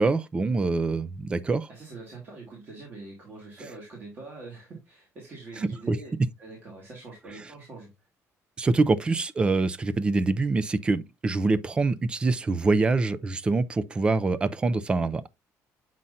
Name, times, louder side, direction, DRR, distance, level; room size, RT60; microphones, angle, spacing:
voice 1, 0.0-1.7 5.6-6.0 8.6-15.3, right 3 dB, 15° right, 0.4 m, -25 dB
voice 2, 1.7-6.1 6.4-7.9, right 3 dB, 35° right, 2.2 m, -44 dB
7.5 x 5.6 x 2.5 m
cardioid pair, 175°, 6 cm